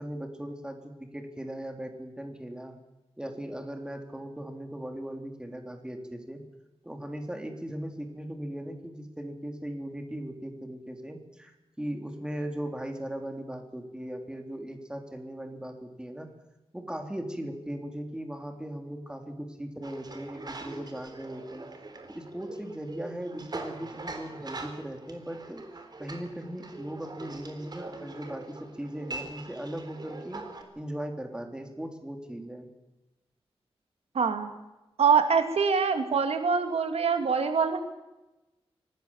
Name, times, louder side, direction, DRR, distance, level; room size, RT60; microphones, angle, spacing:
voice 1, 0.0-2.8 3.2-6.4 6.8-16.3 16.7-21.7 22.1-25.6 26.0-30.4 30.8-32.7, right 1 dB, 10° right, 4 dB, 3.5 m, -38 dB
sound 1, 19.8-30.6, right 3 dB, 45° right, 3.8 m, -43 dB
voice 2, 34.1-34.5 35.0-37.8, right 6 dB, 90° right, 7 dB, 2.5 m, -24 dB
25.5 x 18.5 x 7.4 m, 1.0 s
wide cardioid pair, 130°, 10 cm